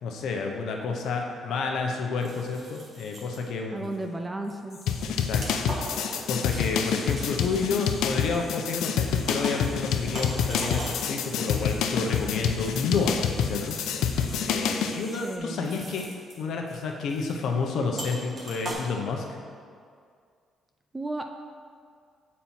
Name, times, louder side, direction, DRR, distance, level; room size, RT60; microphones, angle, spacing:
voice 1, 0.0-3.9 5.1-5.4 6.3-14.2 14.5-16.1 16.4-19.3, left 4 dB, 70° left, 2 dB, 0.8 m, -30 dB
sound 1, 0.7-0.8 2.2-3.4 3.8-4.0 4.4-8.6 9.3-9.8 10.1-13.1 13.5-14.5 14.8-15.2 15.6-16.4 16.7-16.8 17.1-17.4 18.0-18.7, right 1 dB, 40° right, 1.3 m, -41 dB
voice 2, 3.7-4.8 15.1-15.7 20.9-21.2, right 2 dB, 15° right, 5 dB, 0.3 m, -34 dB
sound 2, 4.7-15.4, left 3 dB, 35° left, 0.8 m, -46 dB
sound 3, 4.9-15.0, left 7 dB, 85° left, 0.4 m, -27 dB
7.3 x 4.2 x 4.3 m, 2.1 s
cardioid pair, 135°, 0 cm